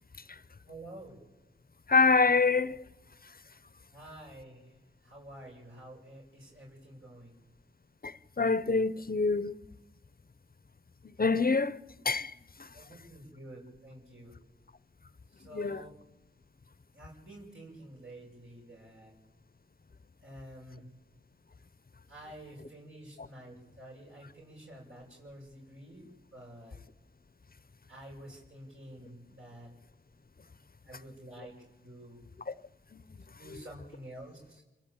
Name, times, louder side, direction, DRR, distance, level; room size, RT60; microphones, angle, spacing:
voice 1, 0.7-1.2 3.9-4.7 5.0-7.4 12.7-14.3 15.3-15.9 16.9-19.1 20.2-20.9 22.1-26.8 27.9-29.7 30.8-31.5 31.8-32.2 33.4-34.6, right 1 dB, 70° right, 7.3 m, -49 dB
voice 2, 1.9-2.8 8.0-9.5 11.2-11.8 12.0-12.3 15.5-15.8 32.5-32.6, left 4 dB, 45° left, 0.9 m, -25 dB
29.0 x 22.0 x 8.9 m
cardioid pair, 40°, 21 cm